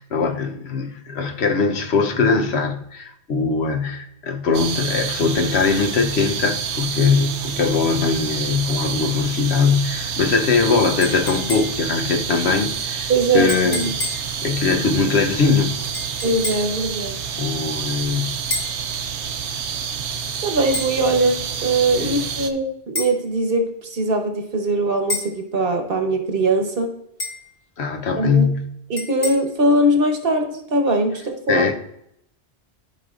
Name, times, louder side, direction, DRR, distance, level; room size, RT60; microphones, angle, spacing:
voice 1, 0.0-13.9 14.4-15.8 17.4-18.4 22.0-22.3 27.8-28.7 31.5-31.7, left 5 dB, 75° left, 1.0 m, -21 dB
sound 1, 4.5-22.5, right 7 dB, 85° right, 1.0 m, -28 dB
sound 2, 11.0-11.9 13.5-14.3 15.9-16.8 18.5-18.8 20.7-20.9 22.9-23.2 25.1-25.4 27.2-27.5 29.0-29.3, left 1 dB, 40° left, 1.3 m, -29 dB
voice 2, 13.1-13.9 16.2-17.2 20.4-26.9 28.2-28.5 28.9-31.6, right 2 dB, 55° right, 1.2 m, -21 dB
12.5 x 5.0 x 2.4 m
omnidirectional pair, 1.1 m